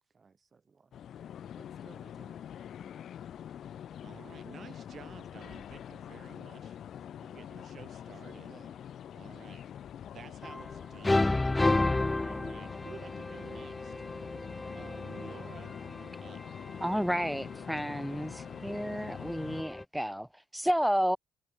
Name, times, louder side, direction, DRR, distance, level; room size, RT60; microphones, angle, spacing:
voice 1, 0.1-1.0 1.6-2.4 2.8-2.9 6.1-6.4 7.3-7.5 8.1-8.8, right 5 dB, 35° right, 4.8 m, -60 dB
sound 1, 0.9-19.6, left 9 dB, 65° left, 4.4 m, -45 dB
voice 2, 4.0-6.8 7.2-8.5 9.1-9.6 10.1-11.8 12.2-13.9 14.8-16.4, right 7 dB, 55° right, 7.7 m, -52 dB
sound 2, 10.4-10.8 11.0-19.8, left 2 dB, 15° left, 0.9 m, -33 dB
voice 3, 16.8-21.2, equal, ahead, 0.3 m, -31 dB
cardioid pair, 90°, 0 cm